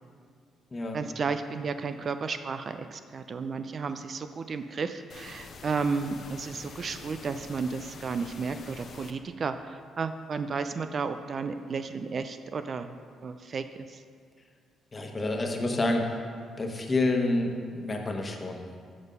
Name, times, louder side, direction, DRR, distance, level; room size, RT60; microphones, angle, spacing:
voice 1, 0.9-9.5 10.0-12.9 13.2-13.6, right 5 dB, 45° right, 9 dB, 0.4 m, -33 dB
sound 1, 5.1-9.1, left 4 dB, 55° left, 0.7 m, -46 dB
voice 2, 14.9-16.2 16.6-18.6, left 2 dB, 30° left, 2 dB, 1.1 m, -28 dB
7.4 x 6.0 x 5.4 m, 2.1 s
cardioid pair, 90°, 0 cm